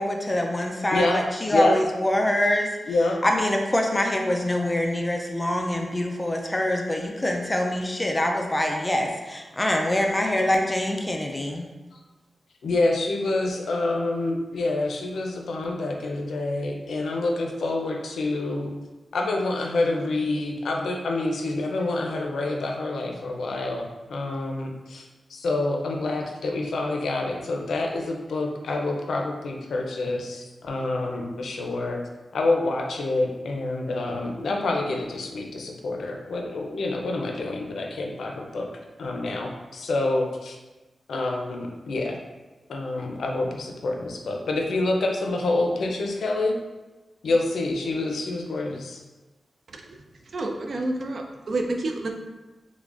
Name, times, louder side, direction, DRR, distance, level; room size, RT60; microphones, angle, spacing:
voice 1, 0.0-2.7 3.2-11.7, left 1 dB, 15° left, 2 dB, 0.4 m, -24 dB
voice 2, 0.9-1.8 2.9-3.2 11.9-12.0 12.6-18.7 19.1-32.0 32.3-38.7 39.0-40.6 41.1-42.2 42.7-46.5 47.2-49.0, left 2 dB, 90° left, 2 dB, 0.5 m, -27 dB
voice 3, 50.3-52.1, right 2 dB, 55° right, 3 dB, 0.4 m, -29 dB
3.7 x 3.2 x 2.4 m, 1.1 s
wide cardioid pair, 120°, 0 cm